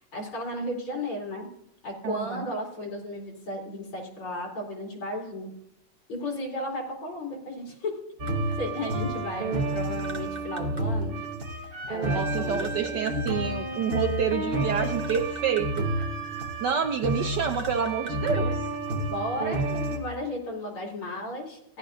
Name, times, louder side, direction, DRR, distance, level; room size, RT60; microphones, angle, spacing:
voice 1, 0.0-1.5 1.8-5.5 6.1-8.0 8.5-11.2 11.6-13.2 19.1-21.8, left 1 dB, 75° left, -1 dB, 3.8 m, -34 dB
voice 2, 2.0-2.5 12.0-15.9 16.6-18.6, right 7 dB, 70° right, 5 dB, 1.1 m, -28 dB
sound 1, 8.2-20.0, right 1 dB, 45° right, 0.7 m, -30 dB
15.5 x 11.0 x 2.5 m, 0.77 s
omnidirectional pair, 2.4 m